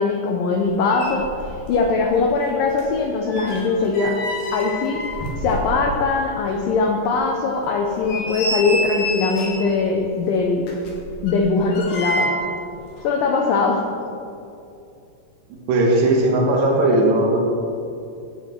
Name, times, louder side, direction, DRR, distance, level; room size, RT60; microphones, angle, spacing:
voice 1, 0.0-4.2 4.5-5.0 5.4-10.7 11.2-12.3 13.0-13.9, left 4 dB, 90° left, 1 dB, 1.9 m, -21 dB
sound 1, 0.6-0.7 0.9-1.9 2.2-6.1 6.5-6.6 7.1-7.2 7.8-9.7 10.6-12.6 12.9-13.0, equal, 65° left, 3.5 m, -29 dB
voice 2, 15.7-17.4, right 2 dB, 80° right, 0 dB, 3.5 m, -17 dB
12.5 x 8.4 x 4.5 m, 2.6 s
omnidirectional pair, 5.0 m